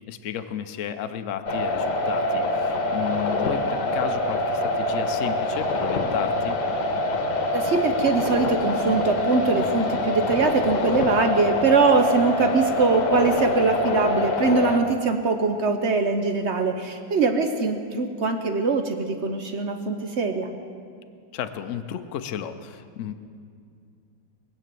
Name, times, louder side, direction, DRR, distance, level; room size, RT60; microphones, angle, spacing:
voice 1, 0.1-6.6 21.3-23.1, left 9 dB, 80° left, 9 dB, 0.6 m, -33 dB
sound 1, 1.5-14.8, left 2 dB, 60° left, 1.7 m, -25 dB
voice 2, 7.5-20.5, right 4 dB, 65° right, 6 dB, 0.7 m, -22 dB
21.5 x 7.9 x 7.6 m, 2.3 s
omnidirectional pair, 2.2 m